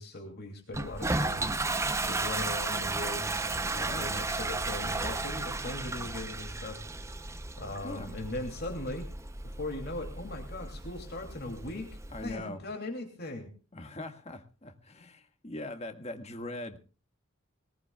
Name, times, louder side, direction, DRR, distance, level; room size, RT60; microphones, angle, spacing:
voice 1, 0.0-1.5 2.0-6.9 7.6-9.1 9.4-13.5, left 1 dB, 50° left, 3 dB, 2.7 m, -39 dB
Toilet flush, 0.7-12.3, right 2 dB, 15° right, 0.7 m, -34 dB
voice 2, 3.7-4.1 7.8-8.1 12.1-12.6 13.7-16.8, left 2 dB, 30° left, 6 dB, 1.8 m, -41 dB
21.5 x 20.0 x 2.3 m, 0.36 s
head